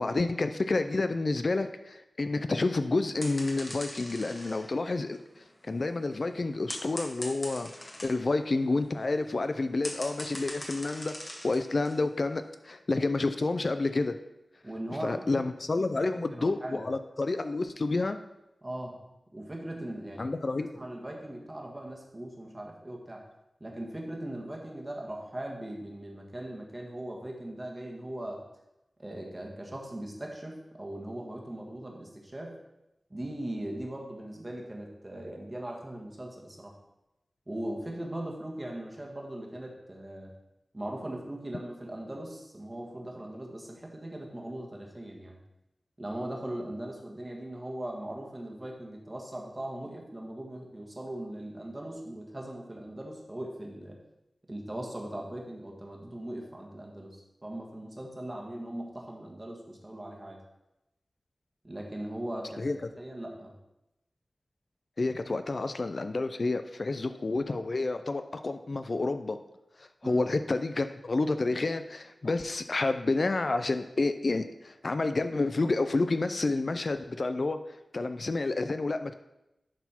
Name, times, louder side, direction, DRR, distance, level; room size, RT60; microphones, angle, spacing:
voice 1, 0.0-14.2 15.0-18.2 20.2-20.8 62.6-62.8 65.0-69.4 69.8-77.6 77.9-79.1, left 3 dB, 50° left, 9 dB, 0.4 m, -29 dB
sound 1, 3.2-8.2 8.8-8.9 9.1-12.5, left 1 dB, 25° left, 1.3 m, -42 dB
voice 2, 14.6-15.4 15.8-16.9 18.6-19.0 19.3-20.4 20.7-23.2 23.6-28.4 29.0-32.6 33.1-36.7 37.5-40.3 40.7-45.4 46.0-54.0 54.5-60.4 61.6-63.6 70.0-70.3, right 1 dB, 25° right, 0 dB, 1.4 m, -39 dB
11.0 x 4.1 x 4.3 m, 0.92 s
wide cardioid pair, 90°, 0 cm